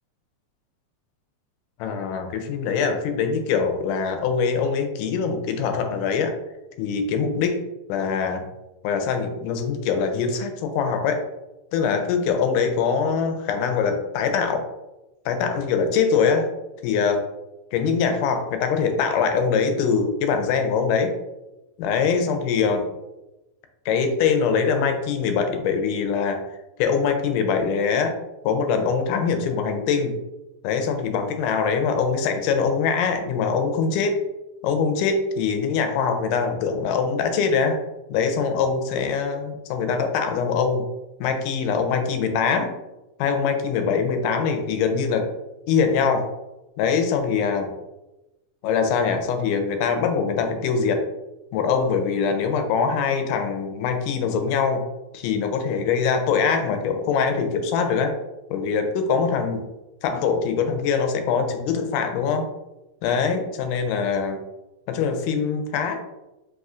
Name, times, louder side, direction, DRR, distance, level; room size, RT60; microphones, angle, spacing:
voice 1, 1.8-6.4 6.8-7.6 7.9-8.5 8.8-11.3 11.7-14.6 15.3-16.5 16.8-17.3 17.7-21.1 21.8-22.9 23.9-26.5 26.8-28.2 28.4-30.2 30.6-34.2 34.6-37.8 38.1-40.9 41.2-42.7 43.2-45.3 45.7-46.3 46.8-47.7 48.6-51.0 51.5-54.8 55.1-58.2 58.5-59.6 60.0-62.5 63.0-64.4 64.9-66.0, left 5 dB, 80° left, 6 dB, 2.0 m, -23 dB
5.4 x 3.0 x 2.4 m, 1.0 s
omnidirectional pair, 3.7 m